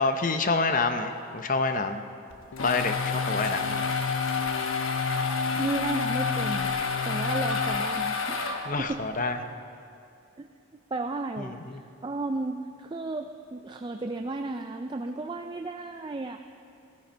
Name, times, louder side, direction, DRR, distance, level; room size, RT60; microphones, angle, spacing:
voice 1, 0.0-2.0 2.6-3.9 8.7-9.4 11.4-11.8, left 3 dB, 40° left, 7 dB, 0.7 m, -27 dB
sound 1, 2.3-9.0, left 5 dB, 75° left, 1.0 m, -29 dB
sound 2, 2.5-8.2, left 5 dB, 55° left, 0.3 m, -34 dB
voice 2, 5.6-6.7 7.0-8.5 8.8-9.0 10.4-10.5 10.9-16.4, right 2 dB, 20° right, 5 dB, 0.4 m, -33 dB
15.5 x 15.0 x 4.5 m, 2.5 s
head